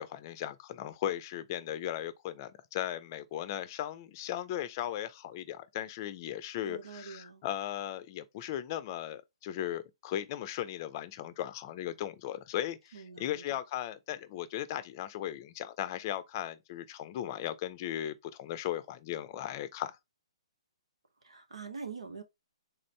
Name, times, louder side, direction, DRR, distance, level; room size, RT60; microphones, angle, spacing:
voice 1, 0.0-20.0, left 12 dB, 35° left, 0.5 m, -37 dB
voice 2, 6.6-7.4 12.9-13.6 21.2-22.2, right 5 dB, 90° right, 1.0 m, -44 dB
3.7 x 2.6 x 3.1 m
hypercardioid pair, 140°, 3 cm